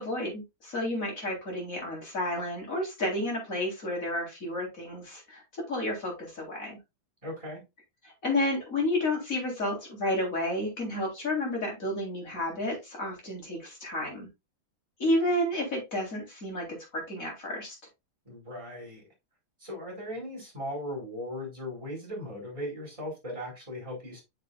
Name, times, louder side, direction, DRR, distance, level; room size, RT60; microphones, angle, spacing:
voice 1, 0.0-5.4 5.7-6.8 8.0-14.3 15.0-16.7 16.9-17.8, left 1 dB, 40° left, -1 dB, 4.5 m, -31 dB
voice 2, 7.2-7.6 18.3-19.0 19.6-24.2, left 1 dB, 15° right, -3 dB, 5.2 m, -38 dB
9.1 x 6.7 x 2.5 m, 0.22 s
omnidirectional pair, 2.1 m